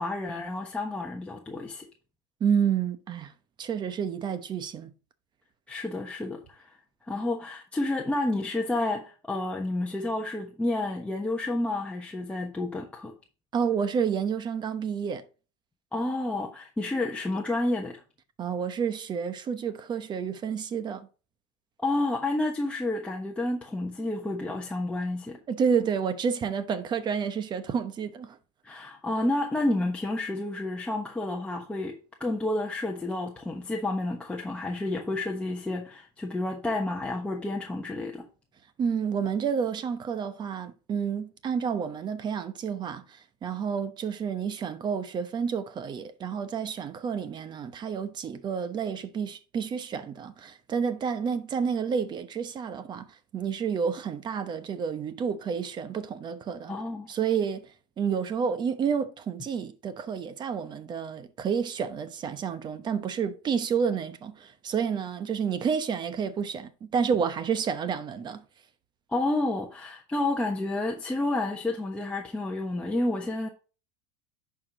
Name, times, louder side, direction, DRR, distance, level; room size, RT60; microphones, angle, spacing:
voice 1, 0.0-1.9 5.7-6.8 7.1-13.1 15.9-18.0 21.8-25.4 28.6-38.3 56.7-57.1 69.1-73.5, left 2 dB, 10° left, 1.1 m, -30 dB
voice 2, 2.4-3.3 3.6-4.9 13.5-15.2 18.4-21.1 25.5-28.4 38.8-53.0 53.3-56.7 57.1-57.7 58.0-68.4, right 7 dB, 30° right, 0.9 m, -30 dB
10.5 x 4.9 x 3.8 m
supercardioid pair, 125°, 14 cm